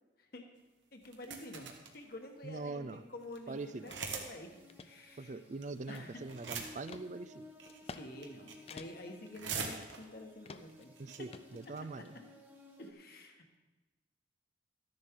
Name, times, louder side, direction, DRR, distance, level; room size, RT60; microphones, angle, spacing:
voice 1, 0.9-4.5 4.8-5.4 5.9-6.2 7.8-10.9 11.8-11.9 12.8-13.6, left 1 dB, 50° left, 4 dB, 1.4 m, -49 dB
sound 1, 1.0-1.9 2.6-2.7 2.9-3.0 3.2-3.4 3.8-4.3 4.6-4.7 5.6-6.0 6.2-6.9 7.6-7.9 8.2-8.7 9.0-10.2 10.7-10.8 11.0-11.2 11.6-11.8, right 5 dB, 75° right, 1.4 m, -41 dB
voice 2, 2.4-3.0 3.5-3.9 5.2-7.5 11.0-12.2, right 3 dB, 40° right, 13 dB, 0.4 m, -43 dB
sound 2, 3.5-12.9, left 1 dB, 10° right, 1.0 m, -58 dB
sound 3, 3.9-4.0 4.5-4.9 5.4-6.4 6.9-7.1 7.7-8.0 8.3-8.4 8.7-9.1 9.5-10.1 10.4-10.8 11.3-12.1, left 4 dB, 30° left, 0.4 m, -50 dB
13.0 x 10.5 x 3.7 m, 1.2 s
head